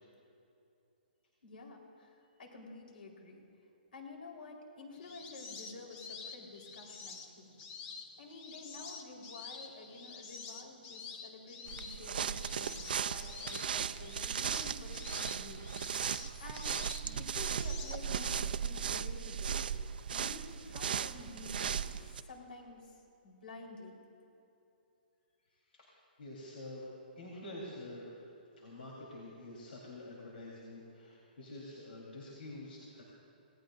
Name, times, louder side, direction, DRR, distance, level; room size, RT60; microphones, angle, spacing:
voice 1, 1.4-3.4 3.9-7.6 8.2-15.7 16.4-19.6 20.1-23.0 23.2-23.9, left 3 dB, 70° left, 0 dB, 4.1 m, -50 dB
sound 1, 4.9-18.3, left 5 dB, 20° left, 0.8 m, -48 dB
sound 2, 11.7-22.2, right 7 dB, 65° right, 0.5 m, -37 dB
voice 2, 26.2-28.1 28.6-33.0, left 1 dB, 85° left, -5 dB, 3.9 m, -47 dB
28.0 x 18.5 x 2.6 m, 2.8 s
hypercardioid pair, 170°, 5 cm